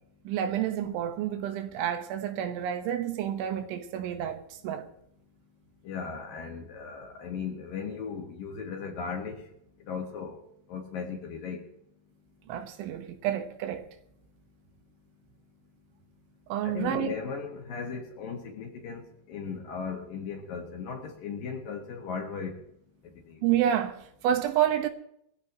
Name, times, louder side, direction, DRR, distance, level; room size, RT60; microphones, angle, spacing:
voice 1, 0.3-4.9 12.5-13.9 16.5-17.1 23.4-24.9, right 10 dB, 85° right, 3.7 m, -29 dB
voice 2, 5.8-9.4 9.9-10.4 10.7-11.6 16.6-22.5, left 5 dB, 60° left, 3.0 m, -37 dB
21.5 x 15.0 x 3.0 m
omnidirectional pair, 5.4 m